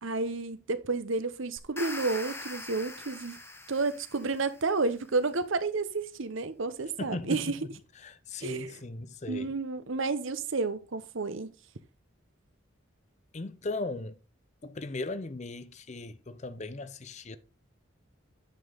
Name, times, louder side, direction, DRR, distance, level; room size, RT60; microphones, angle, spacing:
voice 1, 0.0-3.4 3.7-7.6 8.4-8.8 9.3-11.5, right 3 dB, 70° right, 0.9 m, -31 dB
sound 1, 1.6-4.7, left 2 dB, 10° left, 0.9 m, -42 dB
voice 2, 7.0-7.4 8.0-9.5 13.3-14.2 14.6-17.4, left 2 dB, 35° left, 0.6 m, -37 dB
9.2 x 5.5 x 3.9 m
head